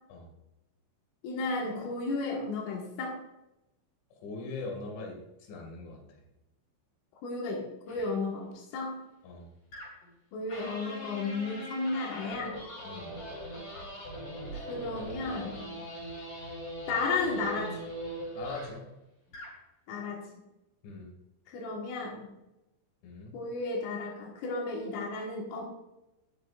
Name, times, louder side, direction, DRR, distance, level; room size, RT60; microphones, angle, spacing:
voice 1, 1.2-3.2 7.2-9.0 10.3-12.6 14.5-15.8 16.9-17.8 19.9-20.2 21.5-22.3 23.3-25.6, left 3 dB, 85° left, -2 dB, 4.2 m, -33 dB
voice 2, 4.1-6.0 9.2-9.5 12.8-13.2 18.3-18.8 20.8-21.1 23.0-23.4, left 3 dB, 70° left, 0 dB, 4.4 m, -41 dB
sound 1, 7.9-8.1 9.7-10.1 10.5-18.9 19.3-19.6, right 1 dB, 30° left, 4.9 m, -41 dB
19.5 x 6.6 x 2.5 m, 0.93 s
omnidirectional pair, 5.6 m